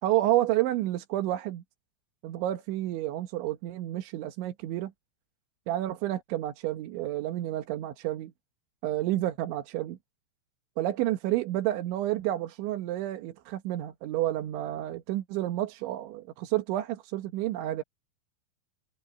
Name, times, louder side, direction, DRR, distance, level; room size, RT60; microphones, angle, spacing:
voice 1, 0.0-1.6 2.2-4.9 5.7-8.3 8.8-10.0 10.8-17.8, right 14 dB, 85° right, 3.9 m, -30 dB
omnidirectional pair, 5.2 m